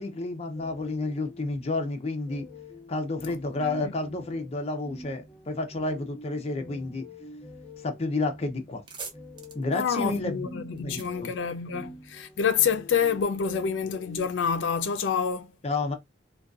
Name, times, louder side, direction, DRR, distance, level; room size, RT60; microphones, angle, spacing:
voice 1, 0.0-2.5 2.9-7.1 7.8-8.8 9.5-10.5 10.7-11.3 15.6-15.9, left 2 dB, 35° left, 0.5 m, -30 dB
sound 1, 0.5-14.3, left 1 dB, 15° left, 0.9 m, -47 dB
sound 2, 8.7-12.2, right 4 dB, 25° right, 0.6 m, -45 dB
voice 2, 9.7-15.5, left 6 dB, 90° left, 0.4 m, -27 dB
2.5 x 2.2 x 2.3 m
head